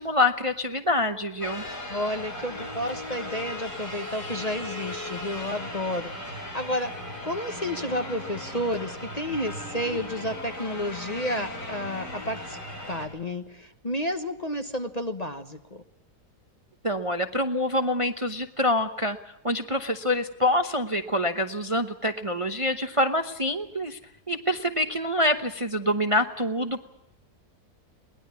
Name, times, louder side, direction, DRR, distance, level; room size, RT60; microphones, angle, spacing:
voice 1, 0.0-1.6 16.8-19.2 19.4-24.0 24.3-26.8, left 1 dB, 25° right, 7 dB, 0.9 m, -26 dB
sound 1, 1.4-13.1, left 1 dB, 85° left, 8.0 m, -37 dB
voice 2, 1.9-6.9 7.2-12.6 12.9-15.8, left 1 dB, 30° left, 8 dB, 1.0 m, -31 dB
22.0 x 19.0 x 8.3 m, 0.85 s
omnidirectional pair, 1.7 m